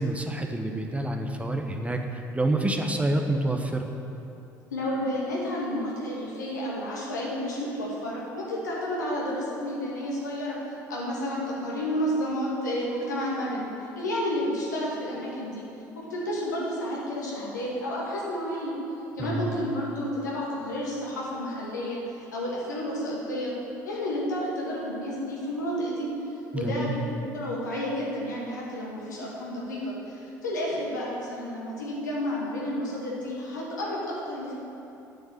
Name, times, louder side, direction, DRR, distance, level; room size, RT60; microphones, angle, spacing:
voice 1, 0.0-3.9 19.2-19.5 26.5-27.0, right 1 dB, 15° right, 3 dB, 1.3 m, -28 dB
voice 2, 4.7-10.6 10.9-13.7 14.0-15.6 16.0-18.7 19.1-23.5 23.8-26.1 26.5-34.5, equal, 85° left, -5 dB, 2.5 m, -31 dB
9.5 x 7.3 x 9.2 m, 2.8 s
hypercardioid pair, 60°, 9 cm